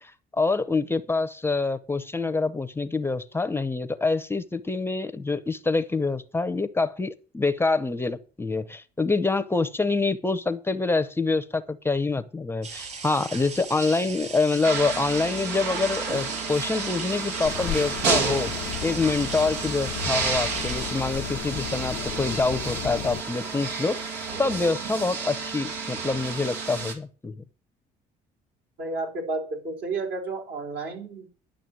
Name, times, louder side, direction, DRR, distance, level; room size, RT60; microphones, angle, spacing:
voice 1, 0.0-18.5 18.8-24.1 24.4-27.3, left 3 dB, 15° left, 0.7 m, -26 dB
sound 1, 12.6-20.9, right 4 dB, 45° right, 5.9 m, -38 dB
sound 2, 14.6-26.9, right 4 dB, 90° right, 2.5 m, -31 dB
sound 3, 17.4-23.2, left 16 dB, 85° left, 0.5 m, -35 dB
voice 2, 28.8-31.3, right 3 dB, 70° right, 4.1 m, -31 dB
11.0 x 6.5 x 7.7 m
cardioid pair, 110°, 17 cm